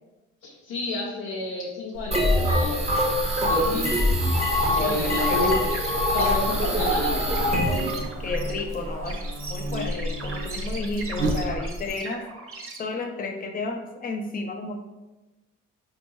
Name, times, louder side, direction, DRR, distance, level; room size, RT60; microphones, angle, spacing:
voice 1, 0.4-2.8 3.4-3.9 4.7-5.6 6.1-7.4, left 2 dB, 75° left, -4 dB, 0.7 m, -30 dB
Buzz, 1.9-11.9, equal, 85° right, 0.6 m, -32 dB
sound 1, 2.1-8.0, left 1 dB, 20° right, 1.1 m, -24 dB
voice 2, 3.4-4.4 4.8-5.7 8.2-9.2 9.5-12.2 12.8-14.8, left 3 dB, 25° left, 3 dB, 0.6 m, -32 dB
sound 2, 4.6-12.8, right 3 dB, 40° right, 0.9 m, -40 dB
4.3 x 2.7 x 3.0 m, 1.1 s
hypercardioid pair, 50°, 33 cm